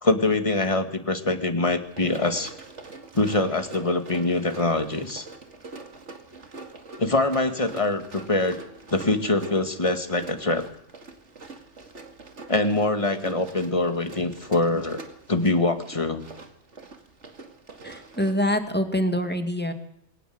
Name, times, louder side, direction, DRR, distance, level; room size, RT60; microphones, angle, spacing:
voice 1, 0.0-2.5 3.1-5.3 7.0-8.6 8.9-10.6 12.5-15.0 15.3-16.3, left 2 dB, 25° left, 7 dB, 2.2 m, -24 dB
Run, 1.8-18.5, right 3 dB, 80° right, 2.6 m, -44 dB
voice 2, 17.8-19.7, equal, 10° left, 7 dB, 2.2 m, -25 dB
22.5 x 18.5 x 8.0 m, 0.69 s
omnidirectional pair, 1.2 m